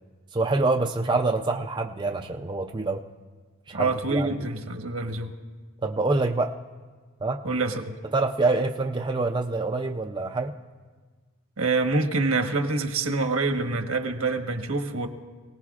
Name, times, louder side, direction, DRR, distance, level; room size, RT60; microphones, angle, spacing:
voice 1, 0.3-3.0 3.7-4.5 5.8-6.5 7.2-7.4 8.1-10.5, right 3 dB, 20° right, 3 dB, 0.4 m, -26 dB
voice 2, 3.7-5.3 7.4-8.0 11.6-15.1, right 3 dB, 80° right, 6 dB, 1.2 m, -26 dB
28.0 x 18.5 x 2.4 m, 1.4 s
head